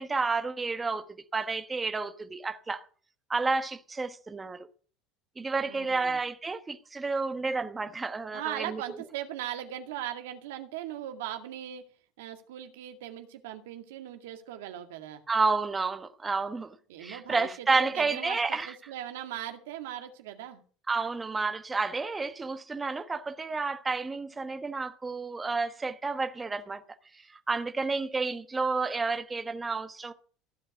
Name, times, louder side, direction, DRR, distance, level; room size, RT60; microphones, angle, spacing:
voice 1, 0.0-2.8 3.3-4.7 5.4-8.8 15.3-18.7 20.9-26.8 27.5-30.1, right 4 dB, 15° right, 1.2 m, -30 dB
voice 2, 5.6-6.2 8.3-11.8 12.2-15.2 16.9-20.6, right 11 dB, 85° right, 2.1 m, -39 dB
15.5 x 5.2 x 9.4 m
supercardioid pair, 120°, 0 cm